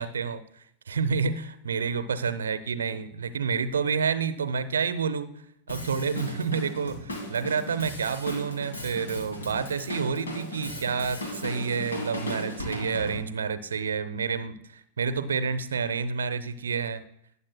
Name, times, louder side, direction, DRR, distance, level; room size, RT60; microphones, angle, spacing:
voice 1, 0.0-5.3 5.7-17.0, right 5 dB, 70° right, 13 dB, 0.7 m, -29 dB
Drum kit, 5.7-13.2, left 1 dB, 70° left, 2.4 m, -36 dB
19.0 x 8.5 x 2.2 m, 0.72 s
figure-of-eight pair, 90°, 0 cm